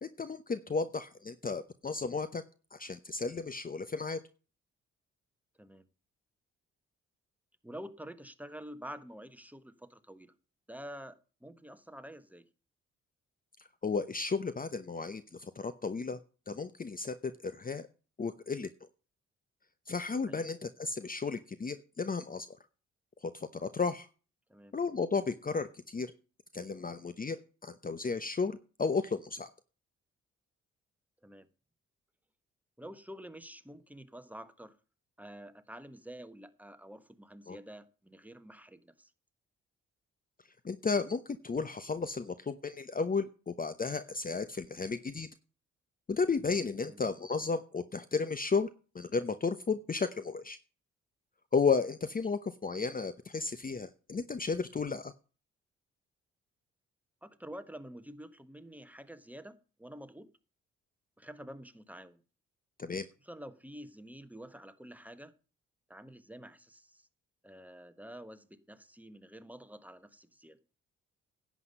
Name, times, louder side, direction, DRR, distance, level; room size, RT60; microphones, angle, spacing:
voice 1, 0.0-2.4 2.7-4.2 13.8-16.2 16.5-17.8 18.2-18.7 19.9-22.5 23.2-24.1 24.7-26.1 26.5-29.5 37.5-37.6 40.6-45.3 46.1-48.7 48.9-50.6 51.5-55.1 62.8-63.1, left 4 dB, 30° left, 0.9 m, -33 dB
voice 2, 7.6-10.3 10.7-12.4 20.3-20.4 24.5-24.7 31.2-31.5 32.8-34.7 35.2-39.1 46.8-47.0 57.2-60.3 61.2-62.2 63.2-65.3 65.9-67.1 67.4-70.6, equal, 5° right, 1.4 m, -48 dB
11.0 x 8.3 x 5.4 m
supercardioid pair, 50°, 30 cm